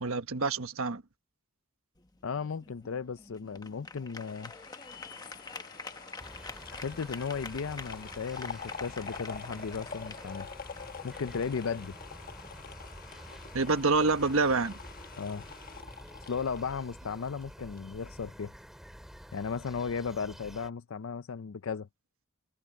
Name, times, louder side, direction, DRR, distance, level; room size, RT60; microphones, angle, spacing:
voice 1, 0.0-1.0 13.5-14.8, right 3 dB, 75° right, 1.2 m, -27 dB
sound 1, 2.0-12.0, left 3 dB, 20° left, 1.1 m, -47 dB
voice 2, 2.2-4.5 6.7-10.5 11.0-12.0 15.2-15.4 16.2-18.5 19.3-21.9, left 5 dB, 70° left, 0.5 m, -35 dB
sound 2, 4.2-17.4 17.8-17.9, left 5 dB, 40° left, 1.6 m, -46 dB
sound 3, 6.2-20.7, equal, ahead, 2.7 m, -49 dB
head